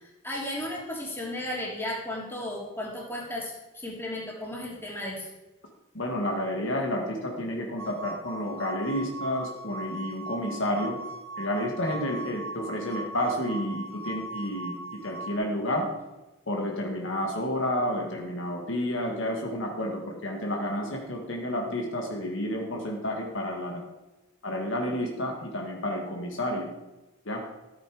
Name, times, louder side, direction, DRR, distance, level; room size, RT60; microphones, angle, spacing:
voice 1, 0.0-5.3, left 1 dB, 10° left, -4 dB, 3.2 m, -35 dB
voice 2, 5.9-11.0 11.4-15.9 16.5-23.8 24.4-26.7 27.3-27.4, left 1 dB, 60° left, 1 dB, 2.0 m, -30 dB
sound 1, 7.8-15.3, right 1 dB, 70° right, 1.1 m, -39 dB
14.0 x 8.8 x 5.1 m, 1.1 s
head